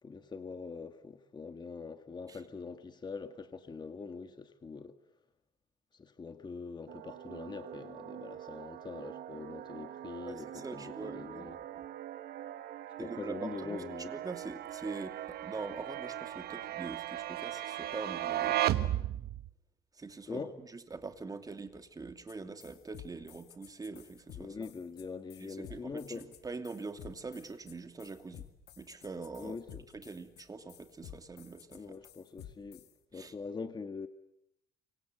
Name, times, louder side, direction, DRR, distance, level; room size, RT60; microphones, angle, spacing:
voice 1, 0.0-4.9 5.9-11.6 13.0-14.1 18.5-18.6 20.3-20.5 24.4-26.3 29.4-29.8 31.7-32.8 33.1-34.1, left 4 dB, 25° left, 1.7 m, -43 dB
sound 1, 6.9-19.5, right 13 dB, 70° right, 1.4 m, -38 dB
voice 2, 10.2-11.9 13.0-13.8 14.1-18.9 19.9-20.5 20.7-24.7 25.4-28.5 28.8-32.0 33.1-33.3, right 3 dB, 20° right, 2.7 m, -44 dB
sound 2, 22.3-22.4 22.6-32.9, left 11 dB, 75° left, 2.3 m, -52 dB
29.0 x 25.0 x 8.0 m
cardioid pair, 110°, 17 cm